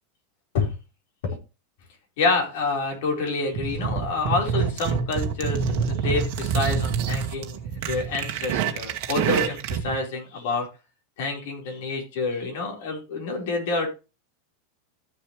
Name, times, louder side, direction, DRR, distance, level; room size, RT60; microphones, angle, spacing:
voice 1, 2.2-10.7 11.2-13.9, left 3 dB, 55° left, 1 dB, 4.6 m, -28 dB
sound 1, 3.5-9.9, right 6 dB, 40° right, 1.8 m, -26 dB
14.0 x 7.1 x 3.3 m, 0.29 s
supercardioid pair, 175°, 0 cm